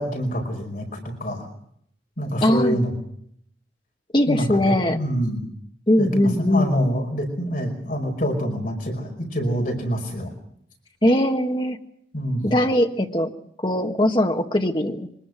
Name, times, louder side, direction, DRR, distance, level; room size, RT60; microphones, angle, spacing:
voice 1, 0.0-1.5 2.2-2.9 4.3-4.6 4.9-5.5 6.0-10.4 12.1-12.5, equal, 50° left, 2 dB, 5.2 m, -26 dB
voice 2, 2.4-2.8 4.1-5.0 5.9-6.8 11.0-11.8 12.4-13.3 13.6-15.1, left 1 dB, 25° left, 4 dB, 1.6 m, -20 dB
24.0 x 21.0 x 6.3 m, 0.68 s
head